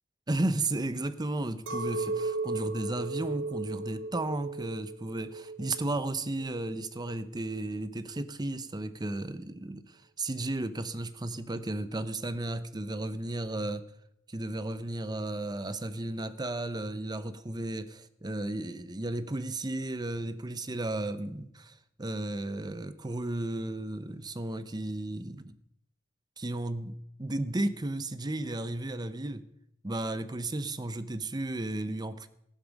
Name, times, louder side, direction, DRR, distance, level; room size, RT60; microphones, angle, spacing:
voice 1, 0.3-13.8 14.3-25.5 26.4-29.5 29.8-32.3, right 2 dB, 20° right, 0.7 m, -34 dB
Chink clink, 1.7-7.1, right 3 dB, 60° right, 0.9 m, -36 dB
15.0 x 11.5 x 5.2 m
head